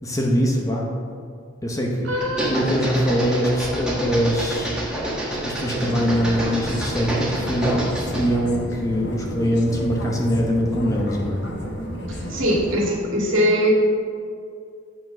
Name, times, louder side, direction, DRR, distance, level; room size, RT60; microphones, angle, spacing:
voice 1, 0.0-0.9 1.6-4.7 5.4-11.4, equal, 15° left, -1 dB, 0.8 m, -23 dB
voice 2, 2.0-2.5 12.1-13.7, equal, 80° right, -3 dB, 2.1 m, -22 dB
sound 1, 2.2-8.3, right 1 dB, 5° right, 1.4 m, -28 dB
sound 2, 5.8-12.8, equal, 60° left, 1.0 m, -32 dB
8.4 x 4.5 x 6.2 m, 2.3 s
head